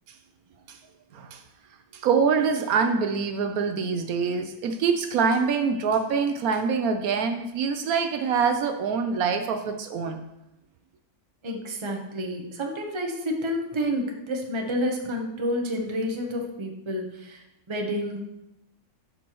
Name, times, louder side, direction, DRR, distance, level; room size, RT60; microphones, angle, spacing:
voice 1, 1.9-10.2, right 5 dB, 75° right, 7 dB, 1.0 m, -25 dB
voice 2, 11.4-18.2, equal, 25° right, 2 dB, 0.8 m, -29 dB
11.5 x 5.4 x 3.0 m, 0.89 s
omnidirectional pair, 1.6 m